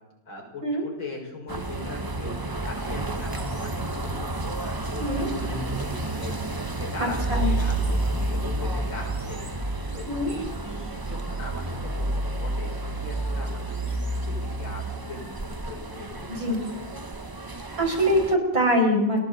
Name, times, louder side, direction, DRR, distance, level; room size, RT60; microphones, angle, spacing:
voice 1, 0.3-17.2, left 3 dB, 85° left, 1 dB, 6.2 m, -40 dB
sound 1, 1.5-18.3, right 2 dB, 30° right, 0.3 m, -30 dB
voice 2, 7.0-7.5 10.1-10.3 16.3-16.6 17.8-19.2, equal, 75° right, 1 dB, 6.1 m, -23 dB
29.0 x 23.0 x 4.1 m, 1.0 s
omnidirectional pair, 2.1 m